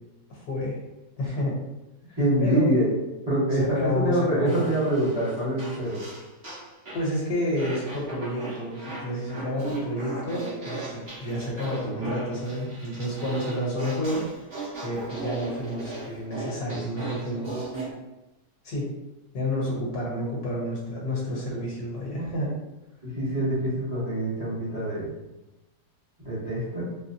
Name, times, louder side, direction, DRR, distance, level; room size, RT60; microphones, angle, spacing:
voice 1, 0.3-0.8 1.2-1.6 2.1-2.6 3.6-4.7 6.9-14.2 14.8-17.7 18.6-18.9 19.3-22.5, left 1 dB, 65° left, -4 dB, 1.4 m, -30 dB
voice 2, 2.2-2.9 3.3-6.0 22.1-22.3 23.0-25.1 26.2-26.8, right 1 dB, 15° right, -9 dB, 1.1 m, -25 dB
Fart, 4.4-7.1 7.6-17.9, right 2 dB, 35° right, 1.4 m, -38 dB
4.1 x 2.2 x 2.7 m, 0.99 s
omnidirectional pair, 1.9 m